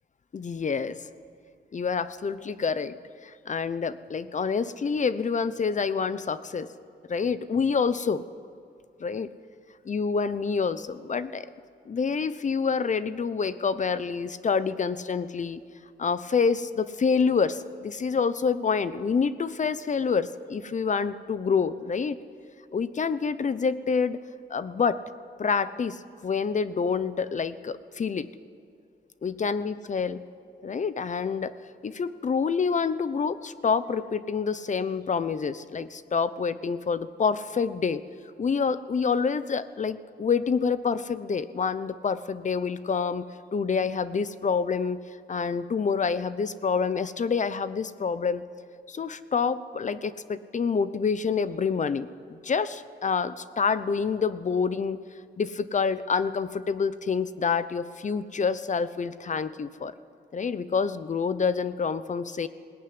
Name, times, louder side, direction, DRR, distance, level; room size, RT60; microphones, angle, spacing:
voice 1, 0.3-1.0 1.7-3.0 3.2-6.7 7.1-8.2 9.0-9.3 9.9-11.5 11.9-15.6 16.0-22.2 22.7-24.2 24.5-25.0 25.4-28.3 29.2-30.2 30.6-31.5 31.8-38.0 38.4-43.3 43.5-45.0 45.3-48.4 48.9-55.0 55.4-59.9 60.3-62.5, left 5 dB, 40° left, 14 dB, 0.8 m, -27 dB
20.0 x 18.0 x 9.6 m, 2.5 s
wide cardioid pair, 120°, 19 cm